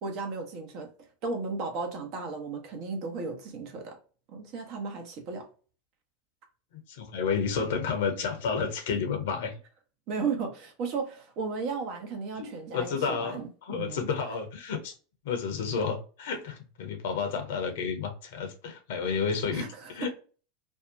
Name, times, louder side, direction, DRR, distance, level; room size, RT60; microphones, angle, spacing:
voice 1, 0.0-0.9 1.2-4.0 4.3-5.4 10.1-13.4 13.7-14.0 19.5-20.1, right 4 dB, 55° right, 0.9 m, -34 dB
voice 2, 6.7-9.5 12.4-12.5 12.7-13.4 13.7-14.9 15.2-20.1, left 6 dB, 70° left, 0.6 m, -31 dB
2.6 x 2.2 x 2.5 m
hypercardioid pair, 90°, 0 cm